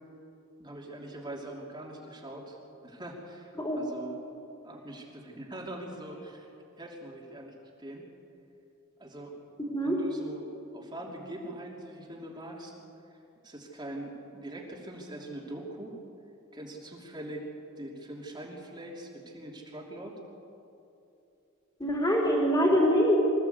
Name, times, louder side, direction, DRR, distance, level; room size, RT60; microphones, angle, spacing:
voice 1, 0.6-4.2 4.6-6.5 6.8-8.1 9.0-9.3 9.8-12.8 13.4-16.0 16.5-17.5 17.8-20.1, right 1 dB, 20° right, -2 dB, 2.9 m, -42 dB
voice 2, 9.6-10.0 21.8-23.1, equal, 20° left, -2 dB, 4.0 m, -24 dB
25.5 x 15.5 x 8.2 m, 2.8 s
head